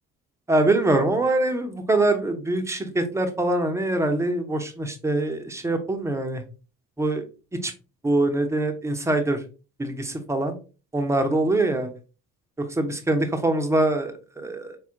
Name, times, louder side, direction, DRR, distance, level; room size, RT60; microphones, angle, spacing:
voice 1, 0.5-6.4 7.0-7.2 7.6-7.7 8.0-9.4 9.8-10.5 10.9-11.9 12.6-14.8, right 2 dB, 5° right, 6 dB, 0.5 m, -24 dB
4.1 x 2.2 x 2.7 m, 0.33 s
figure-of-eight pair, 50°, 41 cm